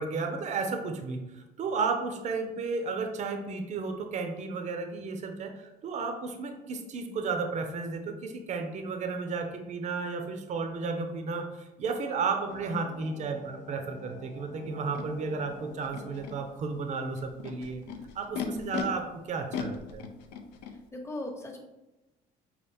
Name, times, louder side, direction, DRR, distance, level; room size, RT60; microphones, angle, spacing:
voice 1, 0.0-17.8 18.1-20.1, right 4 dB, 45° right, 5 dB, 0.5 m, -33 dB
sound 1, 12.5-17.5, left 5 dB, 45° left, 0.6 m, -49 dB
Animal, 14.9-15.0 15.8-16.3 17.2-18.8 19.5-20.7, left 8 dB, 90° left, 0.5 m, -37 dB
voice 2, 18.4-18.7 20.7-21.6, left 2 dB, 15° left, 1 dB, 0.8 m, -39 dB
5.4 x 2.4 x 3.4 m, 1.0 s
cardioid pair, 110°, 17 cm